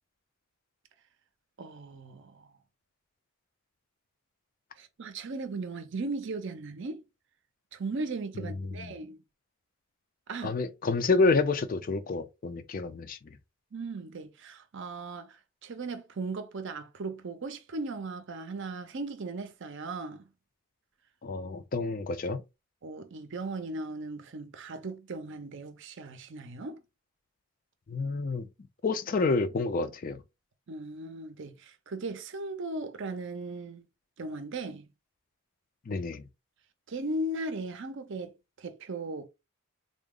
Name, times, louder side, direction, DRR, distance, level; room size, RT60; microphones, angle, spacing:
voice 1, 1.6-2.5 4.8-7.0 7.7-9.2 10.3-10.6 13.7-20.3 22.8-26.8 30.7-33.8 34.2-34.9 36.9-39.3, right 2 dB, 55° right, 0.5 m, -37 dB
voice 2, 10.4-13.4 21.2-22.4 27.9-28.5 28.8-30.2 35.9-36.2, left 3 dB, 40° left, 0.4 m, -28 dB
3.7 x 2.0 x 3.6 m
head